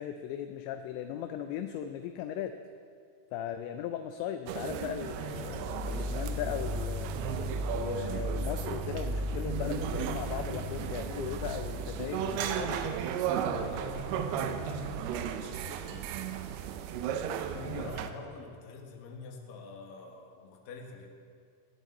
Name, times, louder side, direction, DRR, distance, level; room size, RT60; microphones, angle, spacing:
voice 1, 0.0-2.5 3.3-7.1 7.7-13.0 17.5-17.9, left 9 dB, 80° left, 8 dB, 2.7 m, -38 dB
sound 1, 4.5-18.1, right 8 dB, 80° right, 2.3 m, -35 dB
sound 2, 5.3-13.1, equal, ahead, 1.0 m, -37 dB
voice 2, 13.4-16.1 17.5-21.1, left 4 dB, 60° left, 2 dB, 2.7 m, -46 dB
18.5 x 17.0 x 4.2 m, 2.3 s
omnidirectional pair, 5.5 m